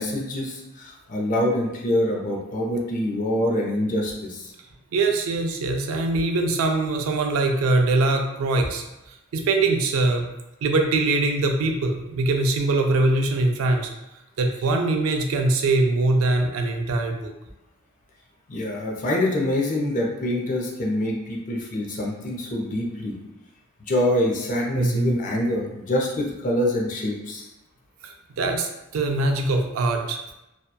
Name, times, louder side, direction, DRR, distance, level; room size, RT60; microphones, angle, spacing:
voice 1, 0.0-4.5 18.5-23.2 23.9-27.5, left 1 dB, 40° left, -1 dB, 0.5 m, -25 dB
voice 2, 4.9-8.8 9.3-10.3 10.6-13.9 14.4-17.3 24.7-25.1 28.0-30.2, right 2 dB, 75° right, 3 dB, 0.4 m, -22 dB
2.8 x 2.2 x 2.2 m, 0.94 s
head